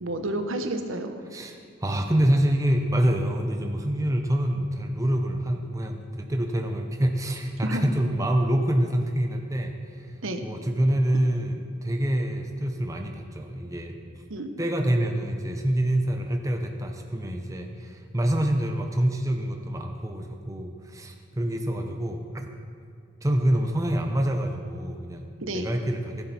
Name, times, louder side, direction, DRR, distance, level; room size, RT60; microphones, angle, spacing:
voice 1, 0.0-1.1 7.6-7.8 10.2-10.4 14.3-14.6 25.4-25.7, right 1 dB, 75° right, 7 dB, 1.0 m, -30 dB
voice 2, 1.3-10.1 10.4-14.0 14.6-22.5 23.2-26.3, right 1 dB, 15° right, 4 dB, 0.6 m, -26 dB
15.5 x 10.5 x 4.3 m, 2.2 s
head